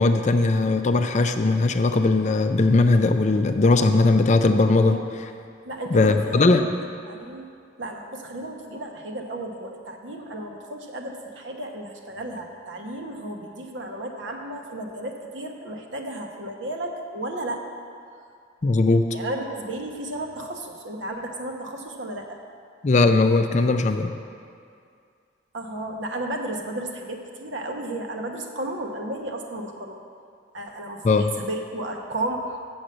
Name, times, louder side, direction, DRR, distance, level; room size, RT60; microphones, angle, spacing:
voice 1, 0.0-5.3 5.9-6.6 18.6-19.1 22.8-24.1 31.0-31.3, left 3 dB, 35° left, 7 dB, 0.4 m, -19 dB
voice 2, 5.6-6.5 7.1-7.5 7.8-17.6 19.1-22.4 25.5-30.0 30.5-32.6, right 1 dB, 70° right, 2 dB, 1.0 m, -33 dB
7.1 x 6.5 x 7.7 m, 2.3 s
head